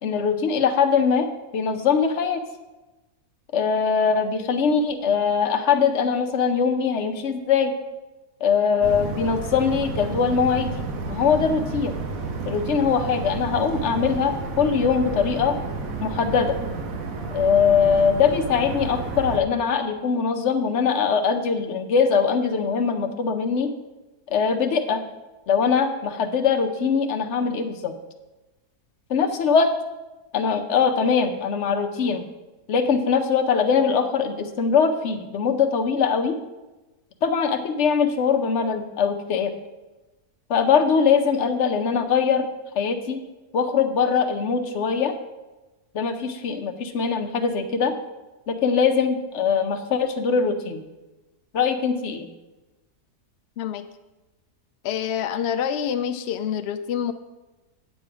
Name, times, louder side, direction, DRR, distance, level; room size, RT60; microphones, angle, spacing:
voice 1, 0.0-2.4 3.5-7.7 8.4-12.0 12.4-15.6 16.0-16.6 17.3-23.7 24.3-25.0 25.5-27.9 29.1-29.7 30.3-32.2 32.7-36.4 37.2-39.6 40.5-42.5 42.7-43.2 43.5-45.1 45.9-47.9 48.5-50.8 51.5-52.3, left 6 dB, 55° left, 6 dB, 0.9 m, -22 dB
sound 1, 8.8-19.4, right 3 dB, 60° right, 1.4 m, -31 dB
voice 2, 54.8-57.1, left 8 dB, 85° left, 9 dB, 0.5 m, -26 dB
9.1 x 7.7 x 4.8 m, 1.1 s
omnidirectional pair, 1.7 m